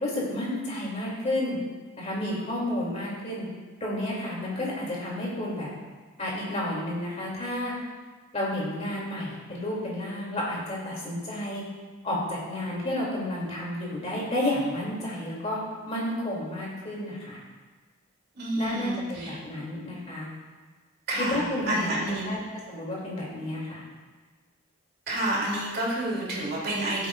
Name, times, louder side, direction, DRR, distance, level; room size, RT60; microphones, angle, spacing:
voice 1, 0.0-1.6 2.0-3.5 3.8-5.7 6.2-7.7 8.3-11.6 12.0-15.6 15.9-17.4 18.6-20.3 21.2-21.9 22.3-22.4 22.7-23.8, left 1 dB, 30° left, -5 dB, 2.6 m, -31 dB
voice 2, 18.4-19.3 21.1-22.4 25.1-27.1, right 1 dB, 50° right, -5 dB, 2.7 m, -29 dB
12.5 x 8.3 x 2.4 m, 1.4 s
head